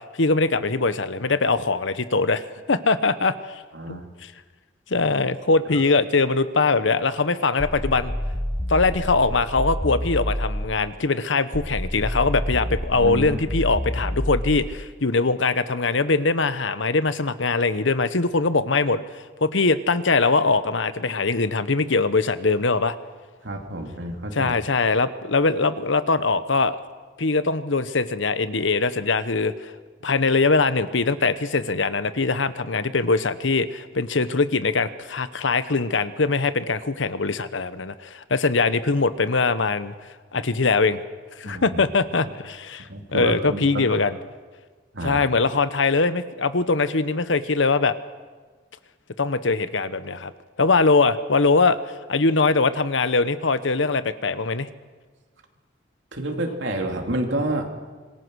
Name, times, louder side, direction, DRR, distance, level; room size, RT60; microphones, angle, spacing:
voice 1, 0.2-2.4 2.7-3.6 3.9-4.3 4.9-8.1 8.7-19.0 19.4-22.9 24.3-26.8 27.2-29.7 30.0-39.9 40.3-41.0 41.4-44.2 45.0-47.9 49.2-50.3 50.6-51.8 52.1-54.7, left 3 dB, 80° left, 13 dB, 1.1 m, -22 dB
voice 2, 3.7-4.1 12.9-13.4 23.4-24.5 41.4-41.8 42.9-44.0 44.9-45.2 56.1-57.7, right 1 dB, 75° right, 3 dB, 2.8 m, -29 dB
sound 1, 7.6-10.9 11.5-14.9, equal, 15° left, 0.9 m, -28 dB
26.0 x 20.5 x 6.4 m, 1.4 s
head